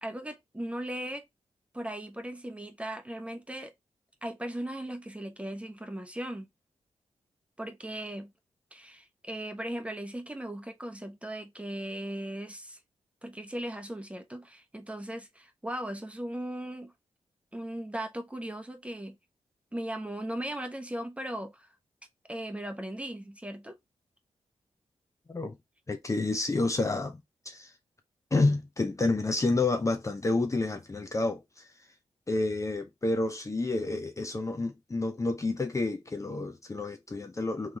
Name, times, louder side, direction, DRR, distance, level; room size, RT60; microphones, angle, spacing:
voice 1, 0.0-1.2 1.7-3.7 4.2-6.5 7.6-8.3 8.7-12.8 13.2-16.9 17.5-19.2 19.7-21.7 22.3-23.8, right 1 dB, 10° right, 1.0 m, -38 dB
voice 2, 25.9-27.2 27.5-27.7 28.3-31.7 32.3-37.8, left 2 dB, 30° left, 0.7 m, -29 dB
3.3 x 3.2 x 3.9 m
cardioid pair, 60°, 11 cm